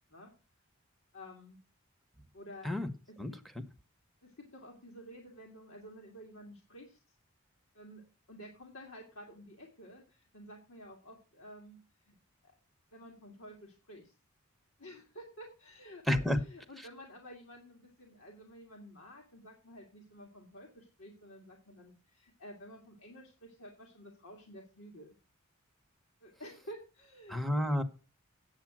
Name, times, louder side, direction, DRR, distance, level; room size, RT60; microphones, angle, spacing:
voice 1, 1.1-1.6 2.3-2.7 3.1-3.4 4.2-7.2 7.7-12.1 12.4-12.6 12.9-14.1 14.8-25.2 26.2-27.4, equal, 65° left, 2.3 m, -51 dB
voice 2, 16.1-16.4 27.3-27.8, left 1 dB, ahead, 0.9 m, -29 dB
8.8 x 8.0 x 6.1 m
head